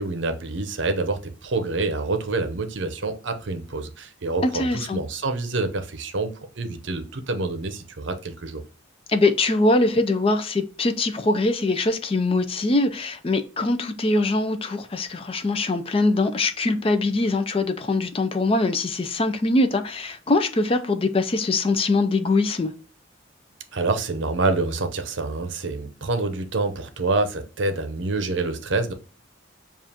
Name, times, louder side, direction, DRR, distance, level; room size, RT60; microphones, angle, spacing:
voice 1, 0.0-8.6 23.7-28.9, right 3 dB, 65° right, 0.7 m, -27 dB
voice 2, 4.4-5.0 9.1-22.7, left 2 dB, 30° left, 0.4 m, -22 dB
7.2 x 2.4 x 2.8 m
head